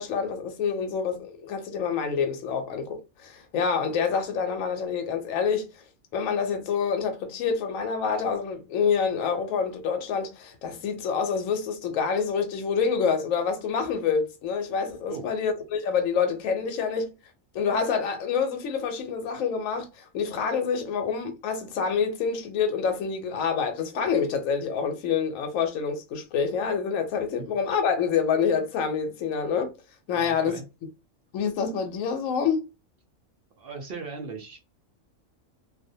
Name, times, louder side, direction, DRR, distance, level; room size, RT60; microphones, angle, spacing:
voice 1, 0.0-5.7 6.1-17.1 17.5-29.7 30.1-30.6 31.3-32.6, left 6 dB, 80° left, 1.0 m, -27 dB
voice 2, 30.2-30.6 33.6-34.6, right 4 dB, 60° right, 0.6 m, -38 dB
2.4 x 2.0 x 2.6 m
omnidirectional pair, 1.4 m